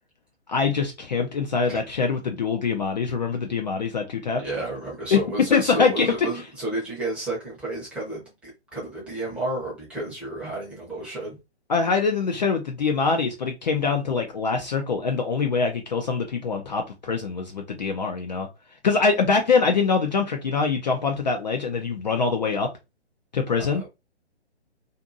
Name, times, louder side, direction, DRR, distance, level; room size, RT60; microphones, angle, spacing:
voice 1, 0.5-4.4 5.1-5.2 5.5-6.3 11.7-18.5 18.8-22.7 23.3-23.8, left 5 dB, 40° left, 0.4 m, -24 dB
voice 2, 4.4-11.4 23.7-23.9, right 1 dB, 5° right, 0.7 m, -31 dB
2.6 x 2.5 x 2.5 m
figure-of-eight pair, 135°, 33 cm